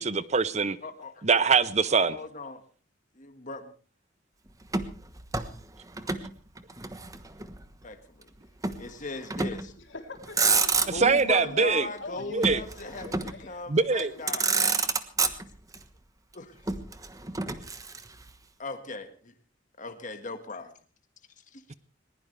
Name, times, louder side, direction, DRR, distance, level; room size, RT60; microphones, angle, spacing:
voice 1, 0.0-0.8 1.2-2.1 11.0-11.9 12.3-12.6 13.7-14.1, right 5 dB, 35° right, 16 dB, 0.7 m, -23 dB
voice 2, 0.8-1.2 1.8-2.6 3.2-3.7 7.8-8.3 8.8-9.7 10.9-14.6 16.3-16.6 18.6-19.3 19.8-20.7 21.5-21.7, left 3 dB, 40° left, 7 dB, 1.7 m, -38 dB
Motor vehicle (road), 4.7-6.3 6.6-7.6 8.6-8.9 9.3-9.7 10.2-11.2 12.4-13.5 14.0-14.1 14.3-15.8 16.7-18.3, right 4 dB, 20° right, 1.2 m, -28 dB
voice 3, 9.8-10.9 11.3-12.5 12.8-13.6 14.0-14.7, left 2 dB, 70° left, 4 dB, 3.5 m, -44 dB
20.5 x 20.0 x 3.4 m, 0.39 s
head